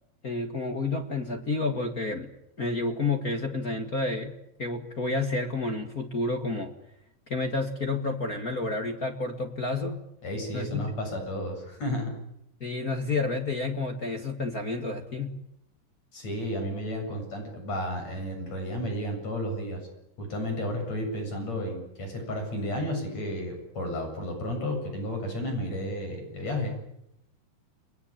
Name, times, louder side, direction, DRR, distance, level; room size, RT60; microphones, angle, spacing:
voice 1, 0.2-2.3 2.6-6.7 7.3-10.0 10.5-10.8 12.6-15.3, left 3 dB, 65° left, 4 dB, 0.9 m, -30 dB
voice 2, 10.2-12.1 16.1-19.9 20.2-26.7, left 1 dB, 35° left, 3 dB, 8.7 m, -32 dB
30.0 x 21.5 x 8.9 m, 0.80 s
omnidirectional pair, 5.2 m